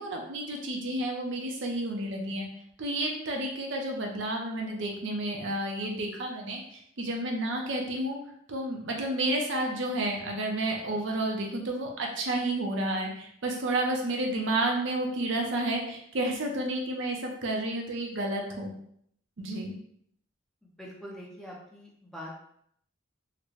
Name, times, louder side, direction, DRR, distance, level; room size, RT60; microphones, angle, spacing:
voice 1, 0.0-2.5 2.8-8.2 8.5-18.7 19.4-19.8, right 1 dB, 65° right, 1 dB, 0.6 m, -31 dB
voice 2, 20.8-22.3, equal, ahead, -4 dB, 0.5 m, -43 dB
3.8 x 2.1 x 3.1 m, 0.68 s
head